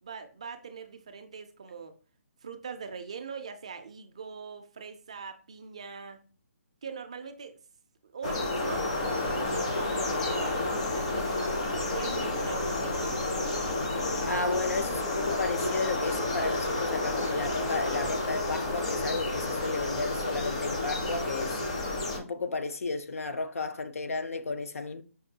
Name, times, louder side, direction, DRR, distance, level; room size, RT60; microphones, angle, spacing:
voice 1, 0.0-2.0 2.4-6.2 6.8-7.6 8.0-10.6 10.9-13.0, right 5 dB, 25° right, 0.3 m, -42 dB
sound 1, 8.2-22.2, left 2 dB, 25° left, 0.5 m, -30 dB
sound 2, 9.6-10.8, equal, 90° left, 1.4 m, -48 dB
voice 2, 14.3-21.6 22.2-25.0, left 3 dB, 70° left, 0.6 m, -33 dB
5.1 x 2.3 x 2.7 m
hypercardioid pair, 175°, 8 cm